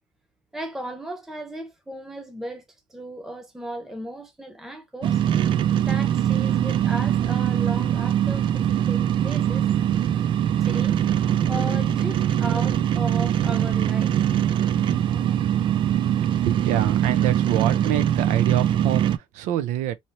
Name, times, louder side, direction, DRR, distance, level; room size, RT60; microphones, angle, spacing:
voice 1, 0.5-2.6 2.9-5.2 5.7-9.7 10.6-11.0 11.4-14.2, right 1 dB, 5° right, 0.6 m, -36 dB
sound 1, 5.0-19.2, right 10 dB, 45° right, 0.4 m, -22 dB
voice 2, 16.4-19.9, right 12 dB, 90° right, 0.6 m, -26 dB
3.2 x 2.7 x 2.7 m
cardioid pair, 145°, 12 cm